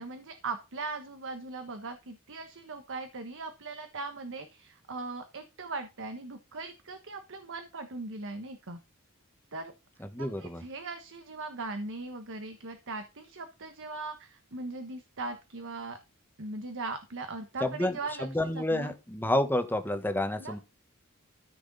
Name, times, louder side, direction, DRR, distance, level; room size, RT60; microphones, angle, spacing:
voice 1, 0.0-8.8 9.5-9.7 10.2-16.0 16.4-18.3 18.5-18.9 20.4-20.6, right 3 dB, 60° right, 1.3 m, -39 dB
voice 2, 10.1-10.6 17.6-20.6, left 1 dB, 10° left, 1.3 m, -29 dB
14.0 x 6.2 x 4.1 m
head